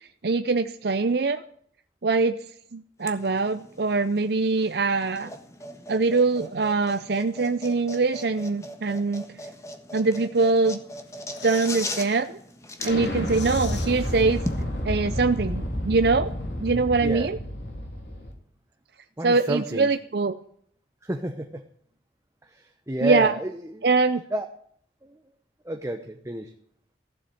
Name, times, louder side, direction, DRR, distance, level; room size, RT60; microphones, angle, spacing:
voice 1, 0.0-1.4 2.0-2.4 2.7-5.3 5.9-9.2 9.9-10.8 11.4-12.4 12.8-14.4 14.8-16.3 16.6-17.4 19.2-20.4 23.0-23.3 23.8-24.2, right 3 dB, 60° right, 9 dB, 0.6 m, -23 dB
sound 1, 3.0-14.6, left 1 dB, 15° left, 1.4 m, -39 dB
sound 2, 11.0-12.3 12.6-12.7 13.0-14.8 15.1-15.2, left 8 dB, 80° left, 1.3 m, -43 dB
Explosion, 12.8-18.3, left 1 dB, 65° left, 3.0 m, -30 dB
voice 2, 19.2-19.9 21.0-21.6 22.5-23.8 24.3-24.5 25.6-26.5, right 1 dB, 15° right, 5 dB, 0.9 m, -30 dB
15.5 x 7.4 x 9.5 m, 0.63 s
head